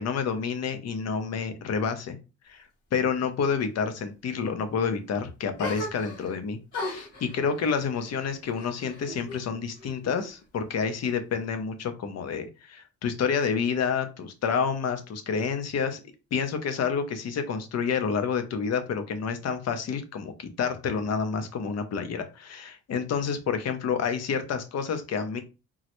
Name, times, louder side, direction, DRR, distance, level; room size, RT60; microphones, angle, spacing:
voice 1, 0.0-2.2 2.5-16.0 16.3-25.4, left 6 dB, 55° left, 9 dB, 0.7 m, -29 dB
sound 1, 5.6-6.4 6.7-9.4 9.8-10.6, left 2 dB, 80° left, 1.8 m, -38 dB
3.8 x 2.1 x 3.0 m, 0.31 s
cardioid pair, 90°, 30 cm